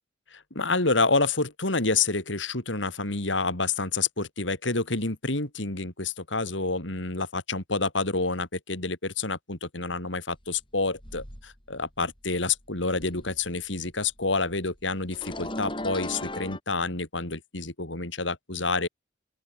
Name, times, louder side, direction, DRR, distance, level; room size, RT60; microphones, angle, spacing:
voice 1, 0.3-18.9, left 3 dB, 80° left, 4.2 m, -28 dB
sound 1, 11.0-11.8 12.2-13.5 13.8-16.6, left 1 dB, 25° left, 7.5 m, -37 dB
open air
head